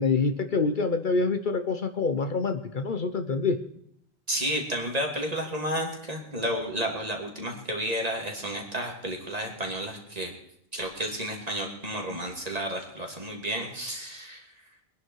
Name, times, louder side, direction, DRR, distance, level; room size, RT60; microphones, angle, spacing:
voice 1, 0.0-3.6, left 4 dB, 55° left, 8 dB, 1.0 m, -26 dB
voice 2, 4.3-10.3 10.7-14.4, equal, 40° right, 1 dB, 2.8 m, -31 dB
22.5 x 10.5 x 4.7 m, 0.73 s
omnidirectional pair, 1.0 m